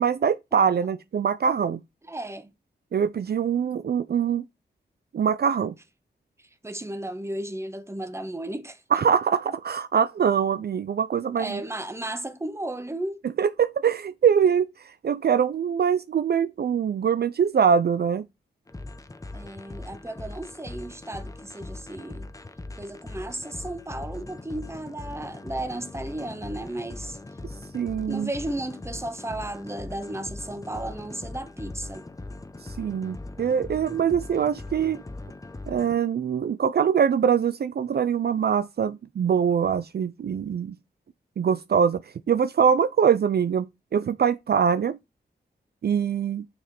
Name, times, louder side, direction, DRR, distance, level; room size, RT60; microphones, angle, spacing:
voice 1, 0.0-1.8 2.9-4.4 5.1-5.7 8.9-11.6 13.4-18.2 27.7-28.3 32.8-35.0 35.7-40.7 41.4-42.0 42.3-45.0 45.8-46.5, right 7 dB, 65° right, 0.4 m, -23 dB
voice 2, 2.1-2.5 6.6-8.8 11.4-13.2 19.3-22.3 22.8-27.2 28.1-32.0, right 1 dB, 15° right, 1.1 m, -34 dB
sound 1, 18.7-36.0, left 2 dB, 20° left, 0.7 m, -40 dB
6.8 x 5.2 x 4.2 m
wide cardioid pair, 110°, 18 cm